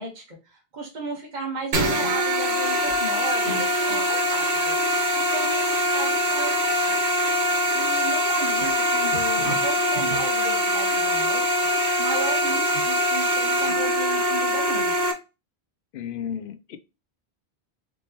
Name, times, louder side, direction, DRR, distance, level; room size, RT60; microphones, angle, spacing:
voice 1, 0.0-4.8 5.1-7.0 7.4-11.5 12.0-14.9, right 2 dB, 45° right, 1.3 m, -35 dB
sound 1, 1.7-15.1, equal, 90° right, 1.2 m, -23 dB
voice 2, 15.9-16.8, left 8 dB, 65° left, 0.7 m, -33 dB
4.5 x 2.9 x 2.8 m
omnidirectional pair, 1.1 m